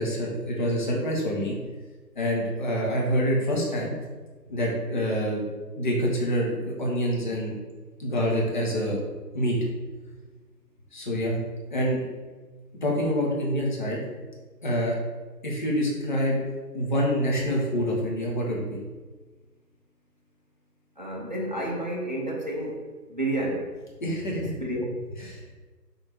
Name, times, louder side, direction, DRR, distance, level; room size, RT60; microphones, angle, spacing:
voice 1, 0.0-1.5 2.1-3.9 4.5-5.4 5.8-7.5 8.0-9.0 9.3-9.6 10.9-11.4 11.7-12.0 12.8-14.0 14.6-15.0 15.4-16.4 16.7-18.7 24.0-24.5 25.2-25.5, equal, 30° left, -3 dB, 1.2 m, -26 dB
voice 2, 21.0-22.8 23.1-23.7 24.3-24.9, right 1 dB, 30° right, -3 dB, 0.7 m, -30 dB
6.5 x 3.5 x 4.5 m, 1.3 s
figure-of-eight pair, 150°, 49 cm